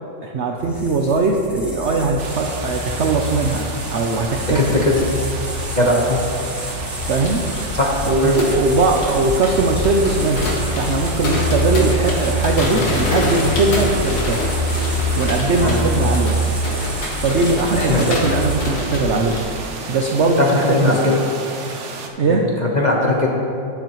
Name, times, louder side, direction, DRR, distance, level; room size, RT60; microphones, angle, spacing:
voice 1, 0.2-4.6 7.1-7.4 8.0-14.4 15.1-16.4 17.2-19.5 19.9-21.1 22.2-22.5, right 3 dB, 80° right, 2 dB, 0.6 m, -20 dB
sound 1, 0.6-18.9, right 1 dB, ahead, 1.4 m, -26 dB
sound 2, 2.2-22.1, right 4 dB, 50° right, 0.9 m, -33 dB
voice 2, 4.5-5.3 5.7-6.2 7.7-7.9 8.2-8.4 15.6-16.0 17.8-18.0 20.4-21.2 22.2-23.3, left 2 dB, 30° left, -2 dB, 0.9 m, -19 dB
sound 3, 6.9-19.4, left 2 dB, 75° left, 2.3 m, -26 dB
12.0 x 10.5 x 3.0 m, 2.6 s
omnidirectional pair, 2.0 m